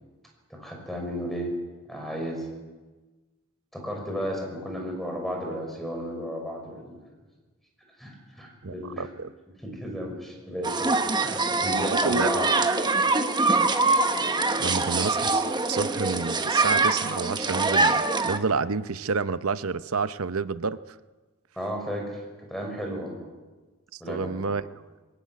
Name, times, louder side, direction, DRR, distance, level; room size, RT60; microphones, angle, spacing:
voice 1, 0.5-1.5 1.9-2.5 3.7-7.0 8.0-9.1 9.6-12.5 21.6-22.2 22.5-23.3 24.0-24.5, equal, ahead, 1 dB, 6.0 m, -33 dB
voice 2, 8.6-9.3 11.9-12.3 12.7-12.8 14.6-20.8 23.9-24.6, right 4 dB, 70° right, 14 dB, 0.7 m, -29 dB
sound 1, 10.6-18.4, right 3 dB, 20° right, 1.2 m, -24 dB
21.5 x 18.0 x 9.5 m, 1.3 s
head